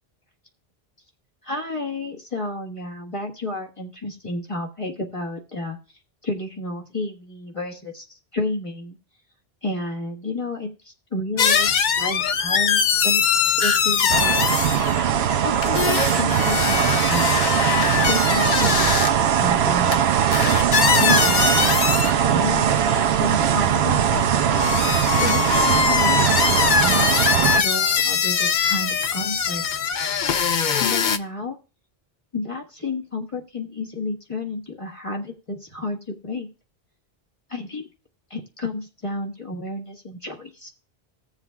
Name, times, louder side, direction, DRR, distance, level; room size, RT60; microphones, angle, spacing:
voice 1, 1.4-5.8 6.2-9.0 9.6-14.4 15.4-17.3 18.1-20.1 21.0-24.1 25.1-29.6 30.8-31.6 32.3-36.5 37.5-37.9 38.3-40.7, left 2 dB, 30° left, 0 dB, 1.5 m, -31 dB
sound 1, 11.4-15.0 15.5-19.1 19.9-20.0 20.3-22.1 22.7-23.1 24.1-31.2, left 7 dB, 55° left, 0.7 m, -22 dB
sound 2, 14.1-27.6, right 9 dB, 85° right, 0.9 m, -20 dB
15.5 x 7.3 x 2.3 m, 0.33 s
omnidirectional pair, 1.0 m